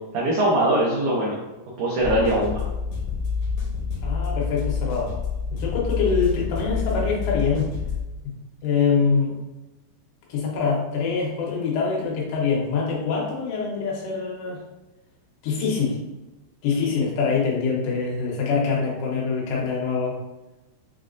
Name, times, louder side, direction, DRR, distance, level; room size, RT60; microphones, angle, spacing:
voice 1, 0.1-1.4 1.8-2.6, right 1 dB, 90° right, -5 dB, 1.7 m, -21 dB
sound 1, 2.0-8.0, left 5 dB, 75° left, 1.8 m, -28 dB
voice 2, 4.0-5.1 5.5-7.7 8.2-8.3 8.6-9.4 10.3-14.6 15.4-16.0 16.6-20.2, left 5 dB, 90° left, -3 dB, 3.2 m, -24 dB
7.4 x 2.5 x 2.5 m, 1.1 s
omnidirectional pair, 4.7 m